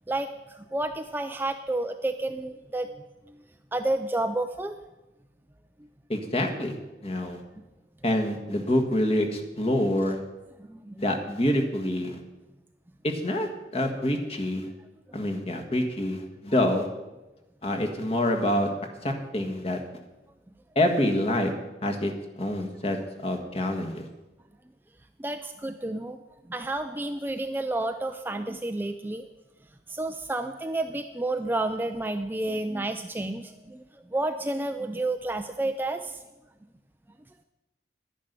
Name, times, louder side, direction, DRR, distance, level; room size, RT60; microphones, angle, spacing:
voice 1, 0.6-3.0 3.7-4.7 10.6-10.9 25.2-26.2 26.5-29.2 29.9-33.8 34.1-36.1, right 2 dB, 10° right, 7 dB, 0.4 m, -30 dB
voice 2, 6.1-6.7 7.0-7.4 8.0-10.2 11.0-12.2 13.0-14.7 15.1-16.9 17.6-18.7 19.0-19.8 20.7-21.5 21.8-22.1 22.4-24.1, left 1 dB, 35° left, 3 dB, 1.6 m, -26 dB
11.0 x 10.0 x 6.7 m, 1.1 s
head